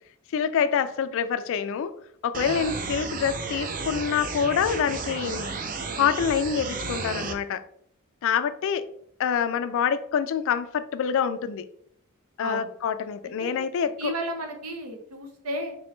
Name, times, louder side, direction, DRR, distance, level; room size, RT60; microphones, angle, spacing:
voice 1, 0.3-1.9 2.2-5.6 6.0-7.6 8.2-8.9 9.2-11.7 12.4-14.1, left 7 dB, 65° left, 0.3 m, -26 dB
sound 1, 2.3-7.3, right 4 dB, 40° right, 0.4 m, -33 dB
voice 2, 14.0-15.7, right 1 dB, 85° right, 0.8 m, -33 dB
3.8 x 3.0 x 3.2 m
head